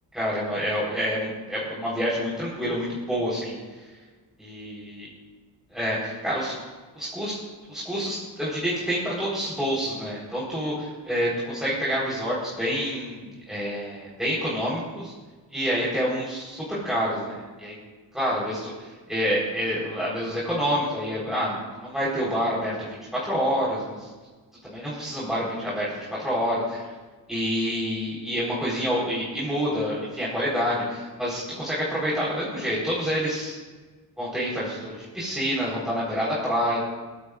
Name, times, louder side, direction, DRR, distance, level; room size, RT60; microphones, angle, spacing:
voice 1, 0.1-3.8 4.4-5.0 5.7-6.5 6.9-7.3 7.7-15.1 15.5-17.7 18.1-24.1 24.6-26.9 27.3-33.6 34.2-36.8, equal, ahead, -8 dB, 4.6 m, -28 dB
22.5 x 18.0 x 2.6 m, 1.3 s
cardioid pair, 115°, 40 cm